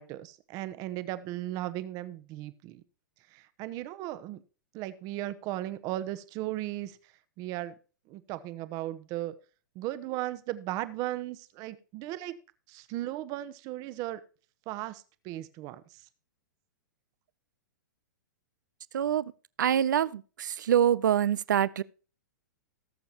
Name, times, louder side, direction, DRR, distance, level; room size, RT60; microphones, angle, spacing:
voice 1, 0.0-2.8 3.3-4.4 4.7-7.0 7.4-7.7 8.1-9.3 9.7-12.3 12.7-14.2 14.7-16.0, right 15 dB, 35° right, 1.0 m, -36 dB
voice 2, 18.9-19.3 19.6-21.8, right 10 dB, 80° right, 0.5 m, -25 dB
19.0 x 7.0 x 2.9 m
hypercardioid pair, 130°, 10 cm